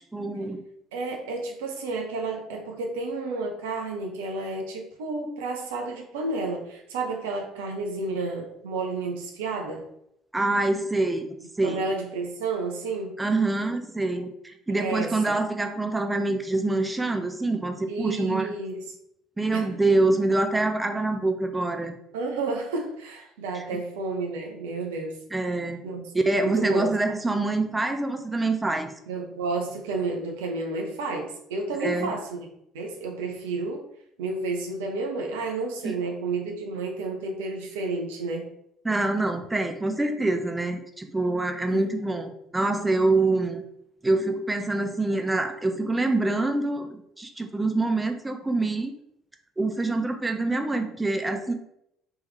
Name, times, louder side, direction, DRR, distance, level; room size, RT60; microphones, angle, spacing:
voice 1, 0.1-0.6 10.3-11.8 13.2-18.5 19.4-21.9 23.5-23.6 25.3-25.8 26.1-28.9 31.8-32.1 35.8-35.9 38.8-43.6 44.0-48.9 49.6-51.5, right 2 dB, 15° right, 5 dB, 0.6 m, -25 dB
voice 2, 0.9-9.9 11.6-13.2 14.8-15.4 17.9-18.8 19.5-19.7 22.1-25.2 25.5-26.1 26.4-26.9 27.2-27.3 29.1-32.5 32.7-33.9 34.2-38.5 41.7-41.9, right 3 dB, 70° right, 2 dB, 0.6 m, -31 dB
3.5 x 3.0 x 3.3 m, 0.76 s
figure-of-eight pair, 55°, 0 cm